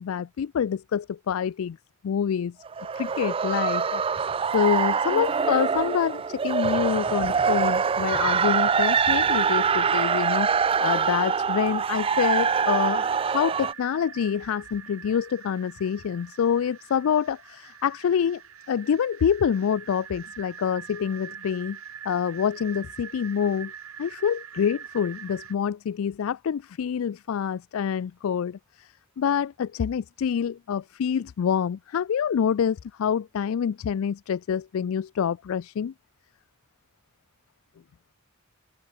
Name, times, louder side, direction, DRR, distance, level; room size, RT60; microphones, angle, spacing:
voice 1, 0.0-1.8 2.0-2.6 2.9-4.2 4.5-18.4 18.7-21.8 22.1-23.7 24.0-28.9 29.2-35.9, left 7 dB, 75° left, 0.4 m, -26 dB
sound 1, 2.7-13.7, right 6 dB, 25° right, 0.3 m, -24 dB
sound 2, 11.9-25.5, right 8 dB, 85° right, 2.0 m, -44 dB
open air
head